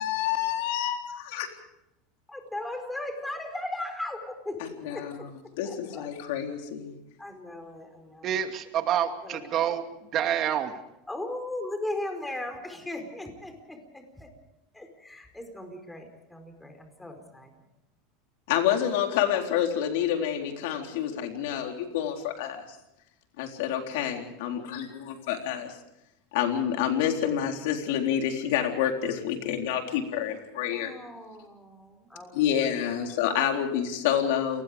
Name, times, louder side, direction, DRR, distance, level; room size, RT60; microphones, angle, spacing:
voice 1, 0.0-1.5 4.6-5.1 5.6-6.9 18.5-22.6 23.4-25.7 26.3-30.9 32.3-34.6, left 9 dB, 75° left, 3 dB, 3.9 m, -28 dB
voice 2, 2.3-4.6 4.9-5.3 5.6-6.1 7.2-8.4 9.2-9.5 11.1-14.3 14.7-17.5 30.7-32.4, left 1 dB, 5° left, 6 dB, 4.7 m, -37 dB
voice 3, 8.2-9.8 10.1-10.7, right 10 dB, 40° right, 6 dB, 2.5 m, -27 dB
28.5 x 20.0 x 5.2 m, 0.84 s
supercardioid pair, 120°, 0 cm